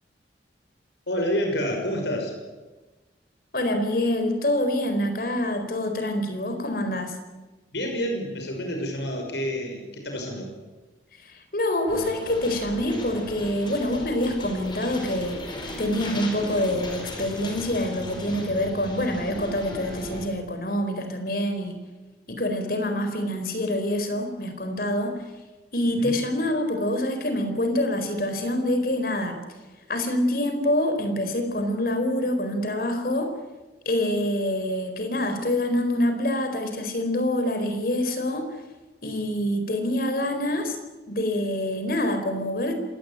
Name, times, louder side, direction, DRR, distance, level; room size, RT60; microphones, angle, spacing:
voice 1, 1.1-2.3 7.7-10.5 26.0-26.2, equal, 80° left, 3 dB, 6.1 m, -28 dB
voice 2, 3.5-7.2 11.2-15.4 15.8-21.8 22.3-25.1 25.7-29.4 29.9-33.3 33.8-38.4 39.0-40.8 41.1-42.7, left 1 dB, 55° left, 6 dB, 4.5 m, -26 dB
sound 1, 11.9-20.3, left 1 dB, 25° left, 4.8 m, -36 dB
26.5 x 18.5 x 9.1 m, 1.2 s
head